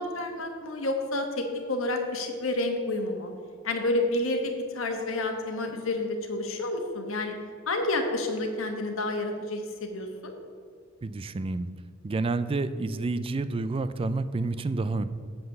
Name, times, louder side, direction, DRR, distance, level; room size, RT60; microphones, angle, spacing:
voice 1, 0.0-3.3 3.6-7.3 7.7-10.3, left 2 dB, 85° left, 4 dB, 1.3 m, -29 dB
voice 2, 11.0-11.7 12.0-15.0, right 3 dB, 25° right, 12 dB, 0.3 m, -29 dB
7.8 x 5.5 x 6.7 m, 2.2 s
head